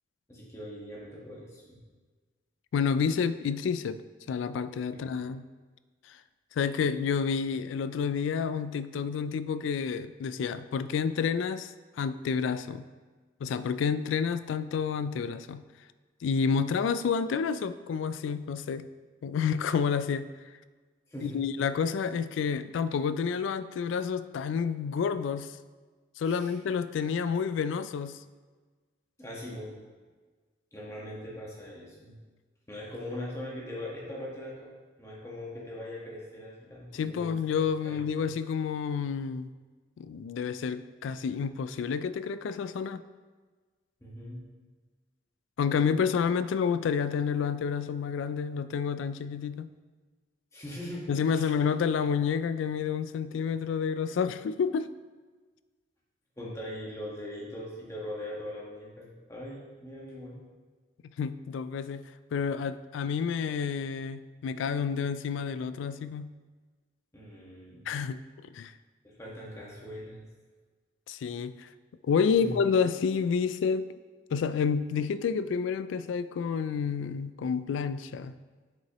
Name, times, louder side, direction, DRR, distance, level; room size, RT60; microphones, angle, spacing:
voice 1, 0.3-1.8 4.9-5.0 21.1-21.4 26.2-26.5 29.2-29.8 30.7-32.2 32.7-34.7 35.0-37.3 37.5-38.0 44.0-44.4 50.5-51.5 56.4-60.4 67.1-67.9 69.0-70.2 72.4-72.6, left 1 dB, 15° left, -5 dB, 1.3 m, -41 dB
voice 2, 2.7-4.0 4.3-5.5 6.1-6.2 6.6-12.9 13.4-15.6 16.2-18.9 19.2-20.3 21.2-25.5 26.2-28.2 36.9-39.5 40.0-43.0 45.6-49.7 51.1-54.9 61.2-66.3 67.9-68.2 68.5-68.7 71.1-71.7 72.1-73.9 74.3-78.3, left 6 dB, 85° left, 14 dB, 0.3 m, -29 dB
7.5 x 5.6 x 3.0 m, 1.4 s
head